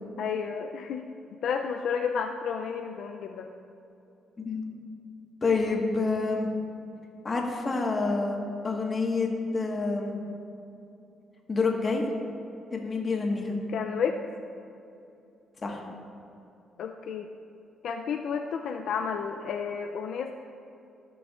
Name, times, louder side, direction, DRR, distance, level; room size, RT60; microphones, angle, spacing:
voice 1, 0.2-1.0 1.4-3.5 13.7-14.2 16.8-17.3 17.8-20.3, left 6 dB, 70° left, 3 dB, 0.4 m, -31 dB
voice 2, 5.4-6.6 7.2-8.4 8.6-10.2 11.5-12.0 12.7-13.6 15.6-15.8, left 3 dB, 35° left, 0 dB, 1.4 m, -28 dB
16.0 x 6.0 x 2.4 m, 2.7 s
cardioid pair, 90°, 0 cm